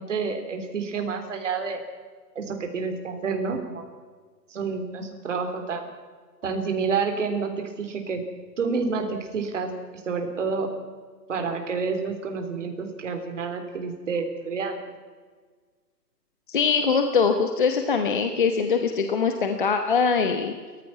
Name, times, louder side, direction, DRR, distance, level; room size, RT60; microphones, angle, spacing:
voice 1, 0.0-1.8 2.4-3.8 4.5-5.8 6.4-8.2 8.6-10.7 11.3-14.9, right 5 dB, 45° right, 5 dB, 3.7 m, -29 dB
voice 2, 16.5-20.5, left 5 dB, 30° left, 6 dB, 1.0 m, -22 dB
30.0 x 14.5 x 6.0 m, 1.5 s
hypercardioid pair, 175°, 49 cm